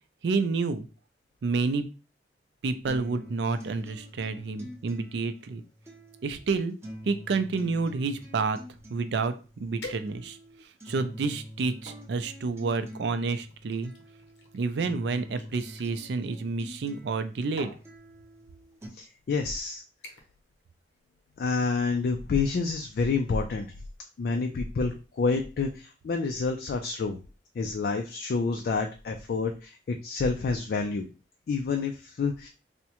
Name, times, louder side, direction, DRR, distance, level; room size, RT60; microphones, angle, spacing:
voice 1, 0.2-0.9 1.4-1.9 2.6-5.6 6.2-6.7 7.0-8.6 8.9-10.4 10.9-13.9 14.5-17.7, right 4 dB, 70° right, 10 dB, 0.4 m, -29 dB
sound 1, 2.9-18.9, equal, 15° right, 0.6 m, -46 dB
sound 2, 9.8-10.6 11.2-12.1 13.0-15.9 17.0-17.2 17.6-17.9 18.8-18.9 19.3-19.6 20.0-20.4 20.8-21.1 21.5-21.6, left 1 dB, 85° left, 0.8 m, -47 dB
voice 2, 18.9-19.8 21.4-23.7 24.2-27.2 27.6-31.1 31.5-32.5, left 4 dB, 55° left, 4 dB, 0.3 m, -28 dB
3.5 x 2.1 x 2.9 m, 0.34 s
head